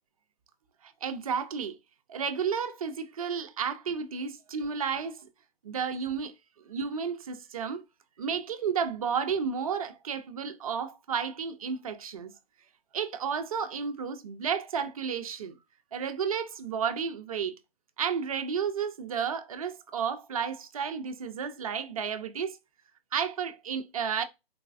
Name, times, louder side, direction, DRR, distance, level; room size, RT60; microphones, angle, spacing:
voice 1, 0.8-1.8 2.1-5.3 5.6-6.3 6.7-7.8 8.2-12.3 12.9-15.5 15.9-17.5 18.0-22.6 23.1-24.2, right 6 dB, 35° right, 0.4 m, -32 dB
3.9 x 2.2 x 2.4 m
hypercardioid pair, 145°, 31 cm